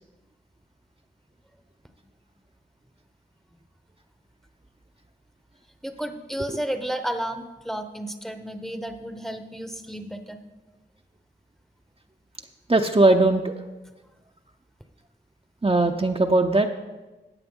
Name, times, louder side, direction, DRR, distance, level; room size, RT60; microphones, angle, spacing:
voice 1, 5.8-10.4, right 1 dB, ahead, 7 dB, 0.8 m, -32 dB
voice 2, 12.7-13.5 15.6-16.7, right 2 dB, 30° right, 4 dB, 0.7 m, -19 dB
14.0 x 9.0 x 3.7 m, 1.1 s
wide cardioid pair, 55°, 19 cm